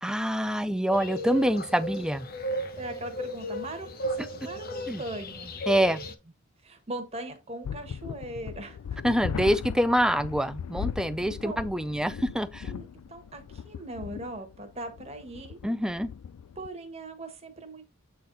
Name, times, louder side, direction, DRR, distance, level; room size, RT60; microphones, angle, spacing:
voice 1, 0.0-2.2 4.9-5.0 5.7-6.0 9.0-12.7 15.6-16.1, equal, 5° right, 0.4 m, -26 dB
sound 1, 0.9-6.1, right 1 dB, 40° left, 1.0 m, -35 dB
voice 2, 2.8-5.5 6.6-9.0 11.4-11.6 12.6-15.6 16.5-17.9, right 1 dB, 30° right, 1.5 m, -40 dB
sound 2, 7.6-16.7, left 7 dB, 85° left, 0.4 m, -38 dB
8.4 x 4.0 x 4.0 m
head